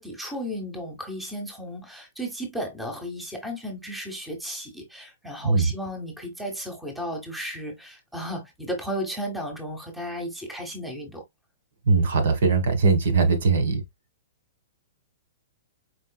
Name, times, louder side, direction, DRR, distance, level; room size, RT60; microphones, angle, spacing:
voice 1, 0.0-11.2, equal, 5° right, 1.0 m, -34 dB
voice 2, 11.9-13.8, right 4 dB, 65° right, 1.4 m, -20 dB
4.7 x 3.7 x 2.2 m
hypercardioid pair, 165°, 0 cm